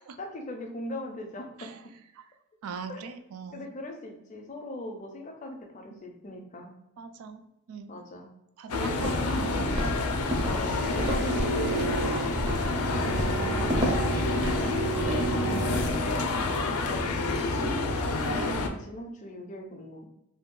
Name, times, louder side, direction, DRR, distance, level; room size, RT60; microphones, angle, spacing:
voice 1, 0.2-1.7 2.9-3.0 3.5-6.7 7.9-8.3 8.7-9.1 10.4-12.3 13.4-14.3 15.9-17.7 18.3-20.1, left 1 dB, 35° left, 3 dB, 0.4 m, -39 dB
voice 2, 2.6-3.7 5.9-6.0 7.0-8.0 8.6-10.0 13.2-13.7 14.3-14.4 15.4-15.8, right 5 dB, 85° right, 8 dB, 0.3 m, -40 dB
sound 1, 8.7-18.7, left 3 dB, 90° left, 0.4 m, -29 dB
Walk footsteps, 8.9-15.9, equal, 25° right, 0.5 m, -32 dB
sound 2, 10.6-15.9, right 3 dB, 60° right, 0.7 m, -32 dB
2.6 x 2.2 x 3.7 m, 0.85 s
head